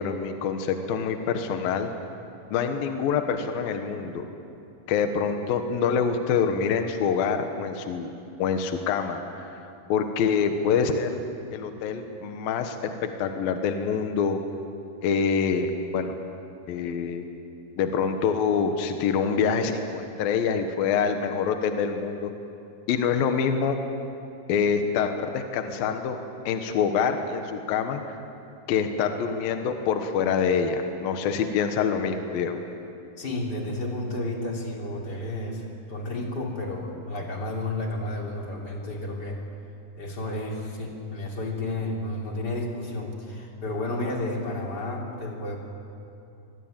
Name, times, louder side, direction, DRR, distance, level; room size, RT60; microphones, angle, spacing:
voice 1, 0.0-1.9 2.5-4.2 4.9-8.1 8.4-9.5 9.9-11.1 11.5-12.8 13.0-14.4 15.0-16.2 16.7-17.2 17.8-22.3 22.9-23.8 24.5-26.2 26.5-28.2 28.7-32.6, left 6 dB, 70° left, 6 dB, 2.9 m, -26 dB
voice 2, 33.2-39.4 40.0-45.6, left 2 dB, 25° left, 0 dB, 3.4 m, -31 dB
24.5 x 20.5 x 9.0 m, 2.6 s
omnidirectional pair, 4.6 m